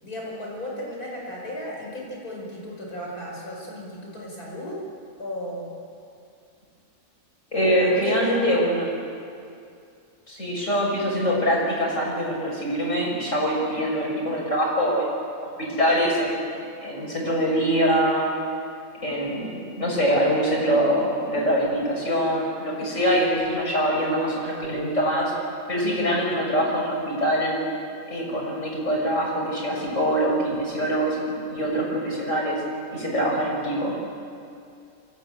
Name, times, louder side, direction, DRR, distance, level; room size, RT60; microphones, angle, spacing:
voice 1, 0.0-4.8 5.2-5.7 7.5-8.6, left 1 dB, 85° left, -2 dB, 5.9 m, -34 dB
voice 2, 7.5-8.9 10.3-15.1 15.6-16.5 16.8-18.3 19.0-25.3 25.7-27.6 28.1-31.2 31.5-32.6 32.9-33.9, equal, 55° left, -3 dB, 6.2 m, -24 dB
23.0 x 16.0 x 8.9 m, 2.4 s
omnidirectional pair, 1.6 m